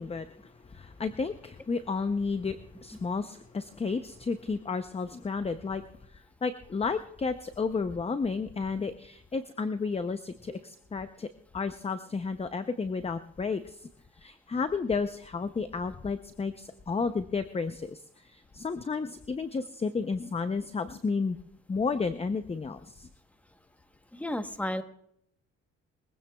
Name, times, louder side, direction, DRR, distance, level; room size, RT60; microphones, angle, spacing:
voice 1, 0.0-5.8 6.1-11.3 11.5-13.9 14.2-21.4 21.7-23.1, left 4 dB, 20° left, 10 dB, 0.6 m, -32 dB
voice 2, 24.1-24.8, left 1 dB, 5° left, 9 dB, 1.0 m, -33 dB
22.5 x 16.0 x 2.3 m, 0.72 s
cardioid pair, 90°, 30 cm